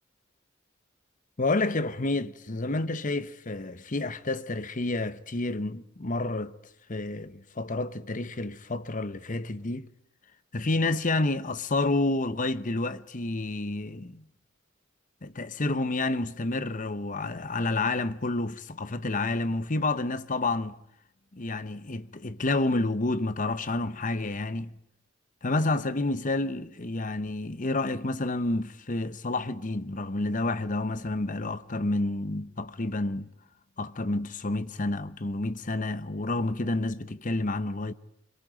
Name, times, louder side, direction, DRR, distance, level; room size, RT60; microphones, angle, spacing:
voice 1, 1.4-6.5 6.9-9.9 10.5-14.2 15.2-20.7 21.3-24.7 25.4-33.3 33.8-37.9, left 2 dB, 40° left, 1.0 m, -29 dB
25.5 x 22.0 x 9.0 m
head